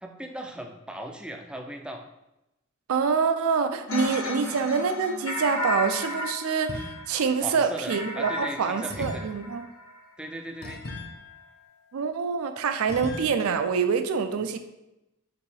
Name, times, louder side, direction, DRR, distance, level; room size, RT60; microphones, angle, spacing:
voice 1, 0.0-2.0 4.2-4.7 7.4-9.3 10.2-10.8, right 1 dB, 5° right, 3 dB, 0.3 m, -38 dB
voice 2, 2.9-9.6 11.9-14.6, right 5 dB, 85° right, 8 dB, 0.4 m, -26 dB
sound 1, 3.9-10.0, left 1 dB, 75° left, 0.8 m, -34 dB
sound 2, 6.7-7.4 8.9-12.3 12.9-13.3, left 2 dB, 50° left, 0.6 m, -40 dB
5.0 x 2.7 x 3.2 m, 0.92 s
head